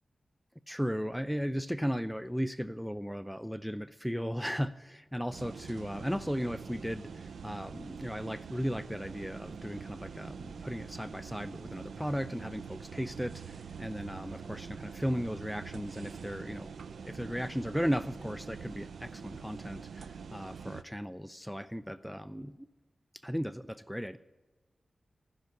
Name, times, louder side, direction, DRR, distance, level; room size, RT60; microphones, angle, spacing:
voice 1, 0.7-16.7 17.0-22.7 23.2-24.2, equal, ahead, 14 dB, 0.5 m, -36 dB
sound 1, 5.3-20.8, right 6 dB, 85° right, 0.5 m, -45 dB
15.0 x 6.5 x 9.6 m, 1.2 s
cardioid pair, 50°, 0 cm